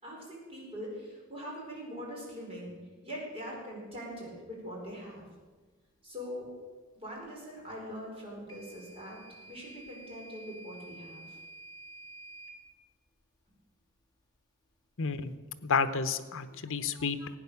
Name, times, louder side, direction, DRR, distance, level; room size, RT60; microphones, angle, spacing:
voice 1, 0.0-2.7 3.0-5.3 6.0-6.5 6.9-11.4, equal, 25° right, -3 dB, 4.9 m, -42 dB
Microwave oven / Alarm, 8.5-12.6, right 2 dB, 20° left, 1.6 m, -50 dB
voice 2, 15.0-15.3 15.6-17.3, left 5 dB, 65° left, 11 dB, 0.9 m, -30 dB
15.5 x 9.2 x 7.0 m, 1.3 s
head